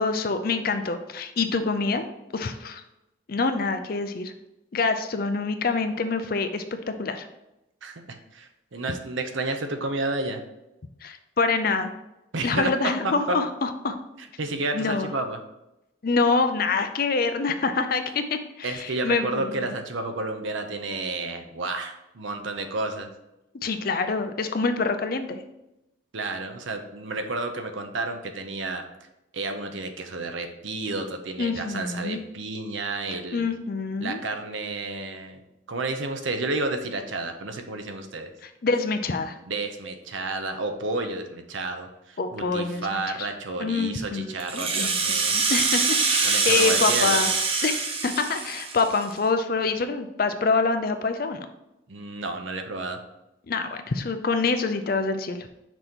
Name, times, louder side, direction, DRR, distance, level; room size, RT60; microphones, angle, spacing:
voice 1, 0.0-2.1 2.3-2.8 3.3-4.3 4.7-7.3 11.0-11.9 12.4-14.0 14.7-15.1 16.0-19.7 23.6-25.4 31.4-32.2 33.1-34.2 38.4-39.4 42.2-43.3 43.6-44.9 45.3-47.3 47.6-51.4 53.5-55.5, left 4 dB, 45° left, 8 dB, 0.5 m, -26 dB
voice 2, 8.3-10.4 12.3-12.7 13.3-13.4 14.4-15.4 18.6-23.1 26.1-28.8 29.3-33.5 34.0-35.4 35.7-38.3 39.5-45.3 46.2-47.2 51.9-53.0, right 2 dB, 75° right, 6 dB, 0.7 m, -31 dB
Rattle (instrument), 44.4-49.2, right 4 dB, 30° right, 0.5 m, -24 dB
6.1 x 2.9 x 5.2 m, 0.90 s
head